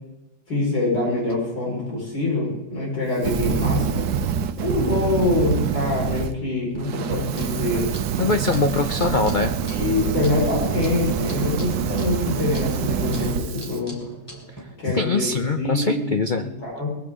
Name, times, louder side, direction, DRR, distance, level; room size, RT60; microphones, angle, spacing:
voice 1, 0.5-4.0 4.6-7.9 9.7-14.0 14.8-16.9, left 2 dB, 85° left, -4 dB, 5.3 m, -25 dB
Fire, 3.2-6.3 6.7-13.8, right 8 dB, 80° right, 1.4 m, -26 dB
sound 1, 7.0-14.6, right 1 dB, 10° left, 3.1 m, -41 dB
voice 2, 8.2-9.5 13.2-13.3 14.6-16.4, left 3 dB, 70° left, 6 dB, 0.4 m, -23 dB
21.0 x 14.5 x 3.7 m, 0.91 s
omnidirectional pair, 1.8 m